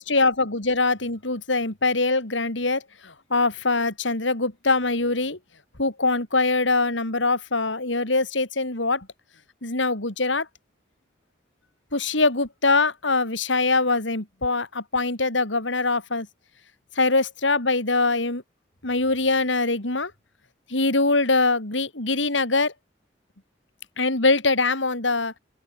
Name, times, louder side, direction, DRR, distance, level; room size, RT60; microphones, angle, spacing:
voice 1, 0.0-5.4 5.8-9.1 9.6-10.5 11.9-16.3 17.0-18.4 18.8-20.1 20.7-22.7 24.0-25.3, left 3 dB, 85° left, 4.0 m, -23 dB
open air
head